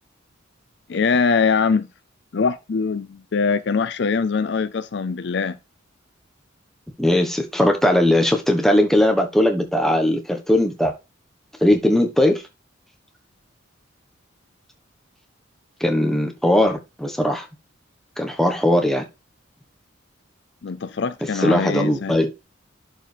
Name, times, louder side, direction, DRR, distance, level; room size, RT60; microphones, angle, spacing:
voice 1, 0.9-1.9 2.3-5.6 20.6-22.2, left 5 dB, 55° left, 0.4 m, -22 dB
voice 2, 7.0-10.9 11.6-12.4 15.8-17.5 18.2-19.0 21.3-22.3, left 1 dB, ahead, 1.2 m, -19 dB
11.0 x 4.9 x 3.4 m
head